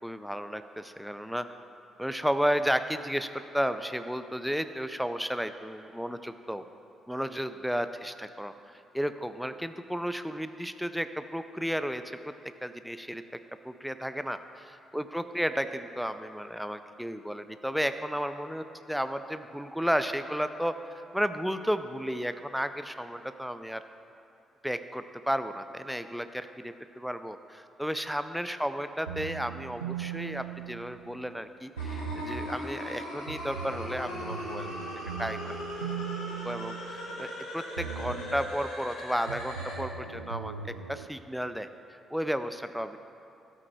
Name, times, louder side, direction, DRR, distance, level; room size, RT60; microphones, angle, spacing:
voice 1, 0.0-1.5 2.0-6.6 7.1-12.3 12.6-13.2 13.6-23.8 24.6-34.7 35.2-35.6 36.4-40.5 40.9-43.0, equal, ahead, 10 dB, 0.6 m, -33 dB
sound 1, 29.1-31.3 31.8-32.6 33.3-37.4 37.8-38.6 39.3-41.1, right 8 dB, 85° right, 0.4 m, -39 dB
sound 2, 31.8-39.8, left 1 dB, 70° left, 2.4 m, -39 dB
13.0 x 8.5 x 4.6 m, 2.6 s
figure-of-eight pair, 40°, 0 cm